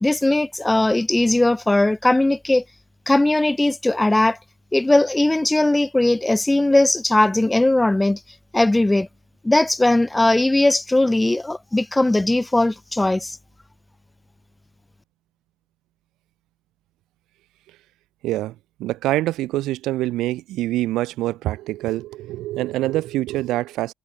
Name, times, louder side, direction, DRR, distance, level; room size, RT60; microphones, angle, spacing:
voice 1, 0.0-2.6 3.1-4.4 4.7-8.2 8.5-9.1 9.4-13.4, left 2 dB, 10° left, 0.5 m, -19 dB
voice 2, 18.2-23.9, right 16 dB, 90° right, 1.2 m, -25 dB
cardioid pair, 160°, 0 cm